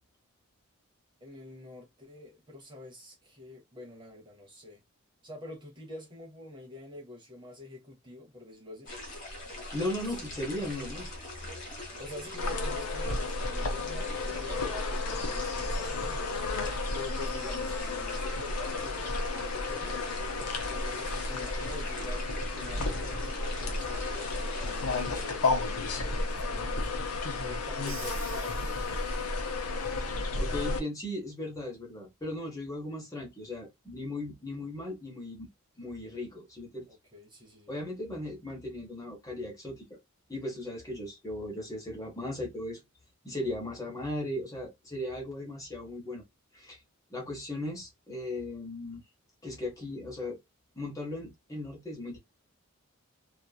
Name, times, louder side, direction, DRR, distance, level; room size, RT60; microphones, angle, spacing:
voice 1, 1.2-4.8 5.2-8.9 10.0-10.2 12.0-16.4 16.9-20.1 20.5-26.9 27.3-29.3 36.9-37.8, left 2 dB, 20° right, 0.7 m, -46 dB
sound 1, 8.9-25.3, left 1 dB, 35° left, 1.1 m, -41 dB
voice 2, 9.7-11.1 30.4-35.5 35.8-36.9 37.7-40.0 40.3-42.8 43.2-46.2 46.5-46.8 47.1-49.0 49.4-50.4 50.8-52.2, left 1 dB, 15° left, 1.0 m, -37 dB
sound 2, 12.4-30.8, left 3 dB, 90° left, 0.7 m, -32 dB
Crash cymbal, 27.9-29.5, right 6 dB, 60° right, 0.8 m, -47 dB
2.9 x 2.4 x 2.2 m
head